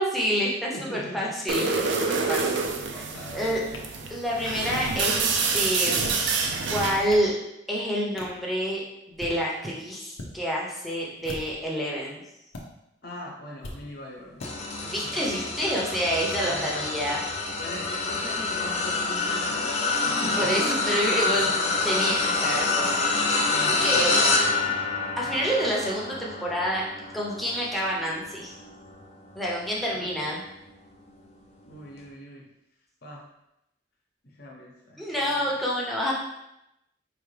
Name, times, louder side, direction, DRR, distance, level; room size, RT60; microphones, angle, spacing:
voice 1, 0.0-1.7 1.9-3.0 3.3-3.6 4.1-7.3 7.7-8.8 9.1-12.2 14.8-17.2 20.3-21.4 21.8-22.9 23.8-24.3 25.2-26.8 27.1-28.5 29.4-30.4 35.0-36.1, equal, ahead, -4 dB, 0.7 m, -28 dB
voice 2, 0.7-2.3 2.9-4.1 13.0-14.4 15.0-15.9 16.3-17.2 17.4-19.7 20.0-21.5 23.5-24.8 29.9-30.3 31.6-32.5 33.0-33.3 34.2-35.0 35.3-35.6, left 1 dB, 55° left, -2 dB, 0.9 m, -41 dB
sound 1, 1.5-7.1, right 4 dB, 65° right, 0.4 m, -27 dB
sound 2, 3.7-3.8 4.7-4.8 5.8-6.3 6.8-7.3 8.2-8.4 9.0-9.4 10.1-10.3 11.2-11.7 12.5-12.6 13.6-13.8 14.4-14.5, left 1 dB, 85° left, 0.8 m, -39 dB
sound 3, 14.4-29.9 30.4-30.7 31.9-32.0, left 3 dB, 35° left, 0.5 m, -27 dB
4.8 x 2.6 x 3.2 m, 0.86 s
head